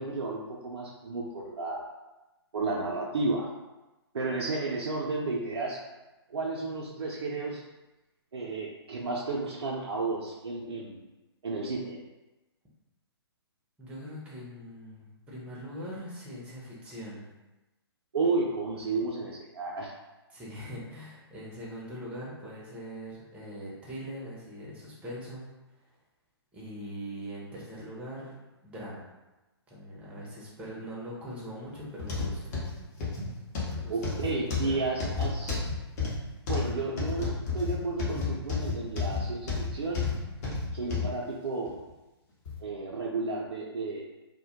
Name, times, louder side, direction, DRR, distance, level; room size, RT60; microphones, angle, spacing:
voice 1, 0.0-1.8 2.5-3.5 4.1-5.8 6.3-7.6 8.3-11.0 11.4-12.0 18.1-19.9 33.9-35.6 36.5-40.0 40.7-41.8 42.6-44.0, right 3 dB, 70° right, -3 dB, 0.4 m, -32 dB
voice 2, 13.8-17.3 20.3-25.5 26.5-28.4 28.6-29.1 29.7-32.5 33.7-34.1 34.5-34.8, equal, 10° right, -5 dB, 0.5 m, -41 dB
sound 1, 32.0-41.1 41.7-41.8 42.5-42.6, left 4 dB, 40° left, 0.7 m, -31 dB
2.1 x 2.1 x 2.8 m, 1.1 s
figure-of-eight pair, 125°, 14 cm